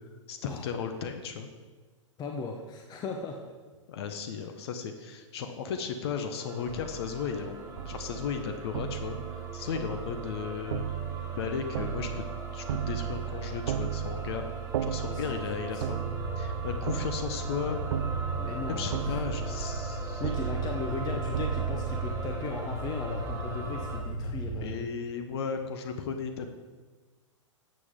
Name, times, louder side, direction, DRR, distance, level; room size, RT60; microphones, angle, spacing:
voice 1, 0.3-1.5 3.9-10.8 11.3-12.2 12.5-14.4 14.8-16.1 16.4-17.8 18.7-20.2 24.6-26.5, left 6 dB, 55° left, 6 dB, 1.0 m, -35 dB
voice 2, 2.2-3.4 15.1-16.0 18.4-18.9 20.2-24.9, left 4 dB, 25° left, 3 dB, 0.9 m, -37 dB
sound 1, 6.4-24.0, right 3 dB, 15° right, 1.8 m, -42 dB
sound 2, 6.7-22.4, right 10 dB, 60° right, 0.5 m, -35 dB
sound 3, 16.0-24.6, equal, 75° left, 2.7 m, -36 dB
12.0 x 7.8 x 3.7 m, 1.4 s
figure-of-eight pair, 105°, 16 cm